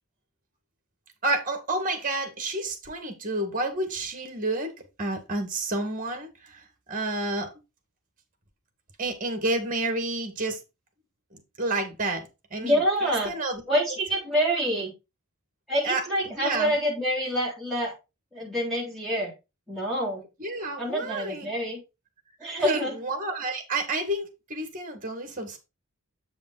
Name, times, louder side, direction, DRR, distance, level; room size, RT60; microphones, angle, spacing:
voice 1, 1.2-7.5 9.0-10.6 11.3-13.6 15.8-16.7 20.4-21.5 22.4-25.6, right 2 dB, 40° right, 7 dB, 1.8 m, -30 dB
voice 2, 12.6-13.3 13.7-14.9 15.7-17.9 18.3-19.3 19.7-20.3 20.8-21.8 22.4-22.9, equal, ahead, -4 dB, 3.3 m, -26 dB
7.9 x 5.2 x 3.9 m, 0.25 s
head